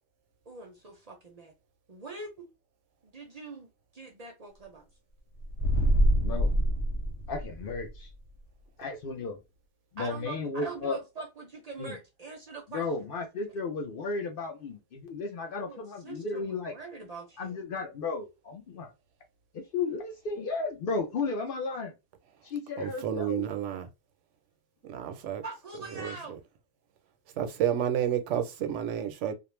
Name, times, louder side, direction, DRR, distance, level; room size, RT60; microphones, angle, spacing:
voice 1, 0.5-1.5 1.9-2.5 3.0-4.8 10.0-13.1 15.6-17.6 25.4-26.4, right 3 dB, 45° right, 0.5 m, -43 dB
sound 1, 5.4-7.9, equal, 85° left, 0.9 m, -25 dB
voice 2, 6.2-6.6 7.3-8.1 8.8-9.4 9.9-11.0 11.8-12.0 12.7-16.7 17.4-18.9 19.5-21.9 22.4-23.4, left 4 dB, 60° left, 0.7 m, -34 dB
voice 3, 22.8-23.9 24.9-25.4 26.0-26.4 27.4-29.3, right 10 dB, 80° right, 0.9 m, -30 dB
2.4 x 2.0 x 3.0 m
omnidirectional pair, 1.2 m